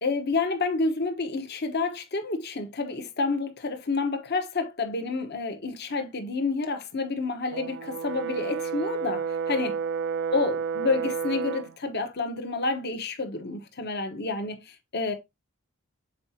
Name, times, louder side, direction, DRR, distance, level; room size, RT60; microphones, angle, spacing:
voice 1, 0.0-9.8 10.3-15.1, left 3 dB, 55° left, 1.2 m, -29 dB
Brass instrument, 7.5-11.7, right 6 dB, 60° right, 0.5 m, -30 dB
7.4 x 4.7 x 2.8 m
head